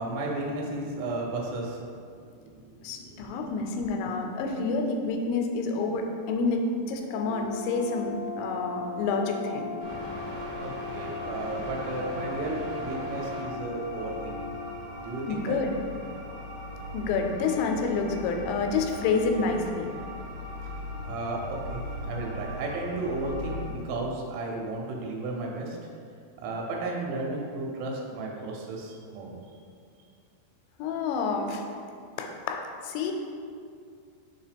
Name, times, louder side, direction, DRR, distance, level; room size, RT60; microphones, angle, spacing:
voice 1, 0.0-3.7 10.6-14.5 15.0-15.6 21.0-25.8 26.4-29.3, right 2 dB, 85° right, -1 dB, 3.2 m, -34 dB
voice 2, 2.8-9.7 15.3-15.8 16.9-19.9 30.8-31.6 32.2-33.1, left 4 dB, 85° left, 3 dB, 2.9 m, -28 dB
Brass instrument, 7.1-14.8, left 4 dB, 65° left, 1.5 m, -38 dB
sound 1, 9.8-23.7, equal, 65° right, 2.7 m, -39 dB
6.6 x 2.9 x 5.0 m, 2.3 s
omnidirectional pair, 5.2 m